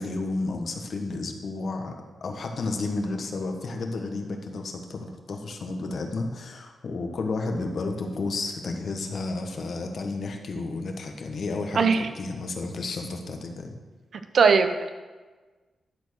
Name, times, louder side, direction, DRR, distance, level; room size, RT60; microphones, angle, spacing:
voice 1, 0.0-1.9 2.2-13.8, left 3 dB, 65° left, 4 dB, 1.3 m, -32 dB
voice 2, 11.7-12.1 14.1-14.9, right 5 dB, 65° right, 8 dB, 0.8 m, -20 dB
11.5 x 4.6 x 6.2 m, 1.3 s
cardioid pair, 60°, 0 cm